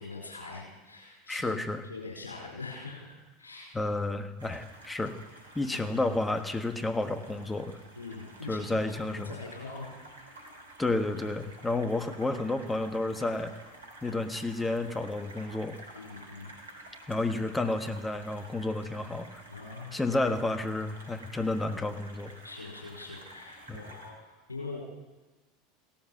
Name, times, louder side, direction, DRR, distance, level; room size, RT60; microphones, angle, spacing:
voice 1, 0.0-1.6 1.8-3.8 7.9-8.8 9.1-9.9 15.9-16.5 19.5-20.0 22.4-24.1 24.5-24.8, left 3 dB, 85° left, -1 dB, 4.8 m, -43 dB
voice 2, 1.3-1.8 3.7-5.2 5.5-7.8 8.5-9.4 10.8-13.5 14.0-15.8 17.1-19.3 19.9-22.3 23.7-23.9, left 2 dB, 10° left, 8 dB, 1.5 m, -31 dB
sound 1, 4.4-24.1, right 1 dB, 85° right, 2.8 m, -51 dB
16.5 x 13.5 x 5.9 m, 1.1 s
figure-of-eight pair, 80°, 0 cm